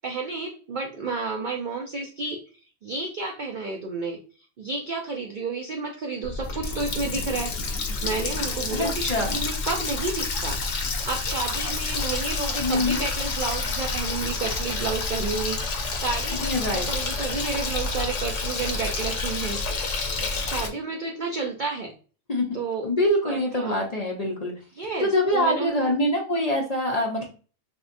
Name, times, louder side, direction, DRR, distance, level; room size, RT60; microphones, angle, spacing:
voice 1, 0.0-2.4 2.8-4.2 4.6-10.6 11.0-19.6 20.4-21.9 22.5-22.9 23.2-23.9 24.8-25.9, right 3 dB, 70° right, 2 dB, 0.4 m, -31 dB
Water tap faucet, 6.2-20.7, left 3 dB, 70° left, 1.0 m, -29 dB
voice 2, 8.7-9.4 12.6-13.0 16.3-16.9 22.3-24.5 25.0-27.3, left 1 dB, 45° left, -2 dB, 0.5 m, -25 dB
3.5 x 2.8 x 2.5 m, 0.38 s
omnidirectional pair, 1.4 m